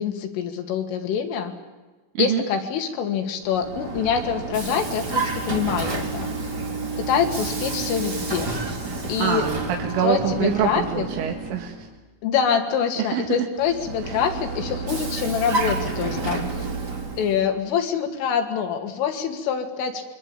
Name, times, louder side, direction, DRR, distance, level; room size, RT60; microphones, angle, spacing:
voice 1, 0.0-1.5 2.2-6.3 7.0-8.5 9.1-9.5 10.0-11.0 12.2-16.7 17.2-20.0, left 7 dB, 85° left, 5 dB, 5.0 m, -25 dB
Vehicle, 3.4-11.9 13.6-17.5, right 3 dB, 25° right, 3.1 m, -30 dB
voice 2, 8.9-11.9 13.0-13.2 14.1-14.2, right 9 dB, 75° right, 1 dB, 4.3 m, -25 dB
25.5 x 23.5 x 9.0 m, 1.2 s
omnidirectional pair, 5.6 m